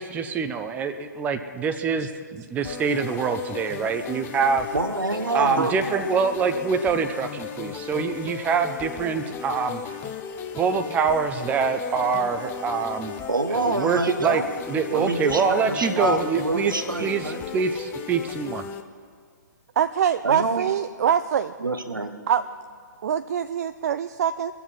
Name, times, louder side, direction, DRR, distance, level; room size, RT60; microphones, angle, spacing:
voice 1, 0.0-4.7 5.3-9.8 10.5-13.2 13.5-14.4 14.7-16.7 17.0-18.6, right 5 dB, 15° right, 7 dB, 0.7 m, -25 dB
sound 1, 2.6-18.8, left 8 dB, 20° left, 0.7 m, -36 dB
voice 2, 4.7-5.7 6.1-6.2 13.3-14.5 14.9-17.4 20.2-20.7 21.6-22.2, right 2 dB, 90° right, 7 dB, 1.1 m, -26 dB
voice 3, 19.8-21.5 22.3-22.4 23.0-24.5, right 8 dB, 50° right, 10 dB, 0.4 m, -24 dB
22.0 x 7.4 x 5.7 m, 2.1 s
figure-of-eight pair, 125°, 11 cm